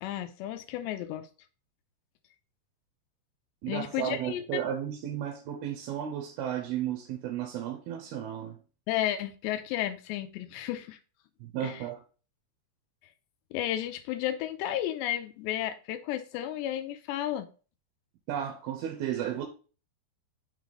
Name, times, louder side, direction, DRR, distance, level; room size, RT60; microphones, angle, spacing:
voice 1, 0.0-1.3 3.7-4.6 8.9-11.0 11.6-11.8 13.5-17.5, left 12 dB, 90° left, 2.9 m, -33 dB
voice 2, 3.6-8.6 11.4-12.0 18.3-19.5, right 10 dB, 75° right, 2.5 m, -34 dB
6.5 x 4.1 x 4.9 m
omnidirectional pair, 4.9 m